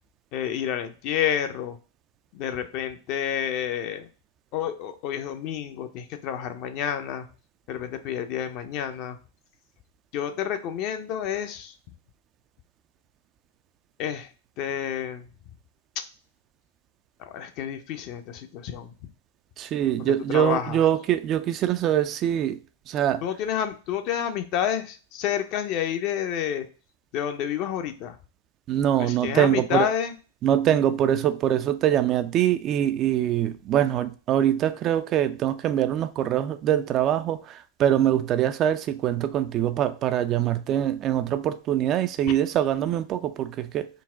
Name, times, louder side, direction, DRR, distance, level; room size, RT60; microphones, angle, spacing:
voice 1, 0.3-1.8 2.3-4.1 4.5-7.3 7.7-9.2 10.1-11.7 14.0-14.3 14.6-15.3 16.0-16.1 17.2-18.9 20.0-20.8 23.2-26.6 27.1-28.2 29.0-30.1, left 9 dB, 45° left, 0.5 m, -29 dB
voice 2, 19.6-22.6 22.9-23.2 28.7-29.9 30.4-43.9, right 11 dB, 35° right, 0.3 m, -23 dB
3.9 x 2.1 x 3.7 m
hypercardioid pair, 100°, 0 cm